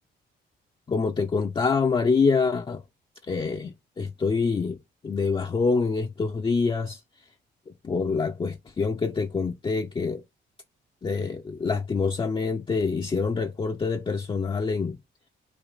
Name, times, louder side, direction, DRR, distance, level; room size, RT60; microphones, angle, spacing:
voice 1, 0.9-2.8 3.3-7.0 7.8-10.2 11.0-15.0, left 4 dB, 25° left, 0.5 m, -26 dB
4.6 x 2.8 x 3.9 m
cardioid pair, 90°, 20 cm